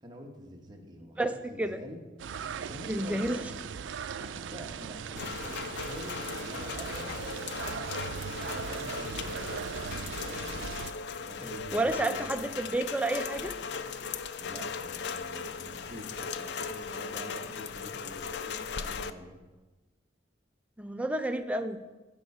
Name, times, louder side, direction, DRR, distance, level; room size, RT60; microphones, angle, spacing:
voice 1, 0.0-2.0 2.7-3.6 3.8-7.2 7.6-7.9 8.2-10.6 11.2-12.6 14.4-19.4, equal, 25° right, 0 dB, 1.2 m, -47 dB
voice 2, 1.2-1.8 2.9-3.4 11.7-13.5 20.8-21.8, right 1 dB, 5° right, 8 dB, 0.4 m, -30 dB
sound 1, 2.2-10.9, right 7 dB, 85° right, 0.4 m, -39 dB
Rain, 5.1-19.1, left 5 dB, 65° left, 0.4 m, -38 dB
11.5 x 4.8 x 5.4 m, 1.2 s
head